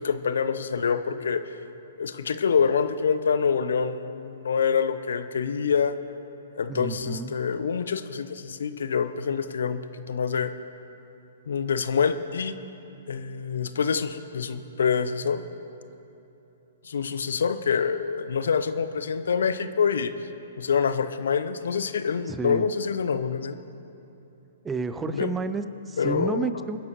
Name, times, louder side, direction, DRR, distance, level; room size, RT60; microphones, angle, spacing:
voice 1, 0.0-1.5 2.0-6.0 6.6-9.8 10.1-10.5 11.5-12.6 13.1-15.4 16.9-20.1 20.6-23.6 25.1-25.3 26.0-26.5, left 6 dB, 70° left, 11 dB, 0.7 m, -26 dB
voice 2, 6.7-7.4 22.3-22.7 24.6-26.8, right 4 dB, 15° right, 12 dB, 0.5 m, -31 dB
26.0 x 10.5 x 3.1 m, 3.0 s
figure-of-eight pair, 115°, 0 cm